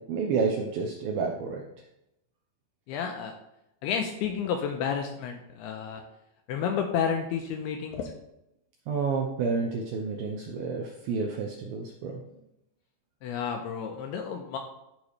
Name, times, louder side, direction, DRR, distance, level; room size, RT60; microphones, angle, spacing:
voice 1, 0.1-1.6 8.9-12.2, right 5 dB, 85° right, 1 dB, 2.2 m, -30 dB
voice 2, 2.9-3.3 3.8-6.0 6.5-8.1 13.2-14.6, left 7 dB, 85° left, 4 dB, 2.3 m, -31 dB
13.5 x 5.0 x 3.2 m, 0.85 s
omnidirectional pair, 5.2 m